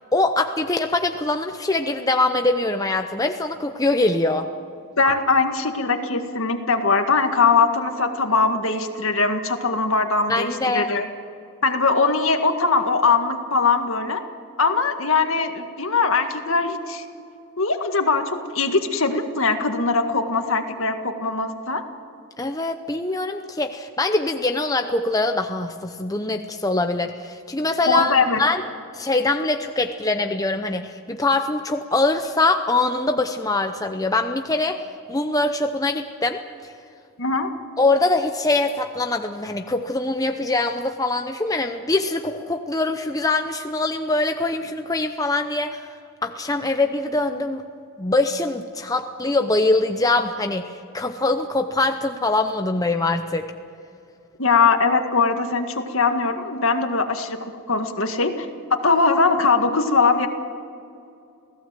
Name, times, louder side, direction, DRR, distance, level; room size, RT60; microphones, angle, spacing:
voice 1, 0.1-4.5 10.3-10.9 22.4-28.6 28.9-34.8 35.1-36.4 37.8-45.9 46.2-47.6 48.0-53.4, left 2 dB, 15° left, 5 dB, 0.7 m, -23 dB
voice 2, 5.0-11.1 11.6-14.2 14.6-17.0 17.6-21.8 27.9-28.4 37.2-37.5 54.4-60.3, left 4 dB, 65° left, 6 dB, 1.8 m, -21 dB
27.5 x 17.0 x 7.7 m, 2.5 s
head